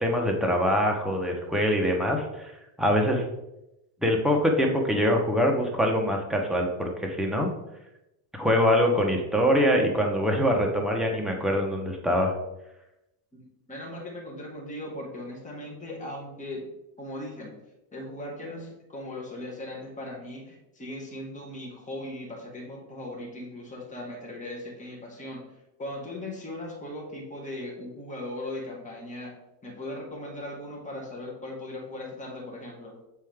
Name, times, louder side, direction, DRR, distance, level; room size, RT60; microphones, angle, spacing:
voice 1, 0.0-2.5 2.8-3.2 4.0-7.5 8.3-12.3, equal, ahead, 0 dB, 1.0 m, -24 dB
voice 2, 13.3-16.7 17.0-17.6 17.9-25.4 25.8-29.3 29.6-33.0, left 1 dB, 15° left, -3 dB, 2.0 m, -38 dB
7.5 x 4.5 x 3.6 m, 0.90 s
cardioid pair, 130°, 45 cm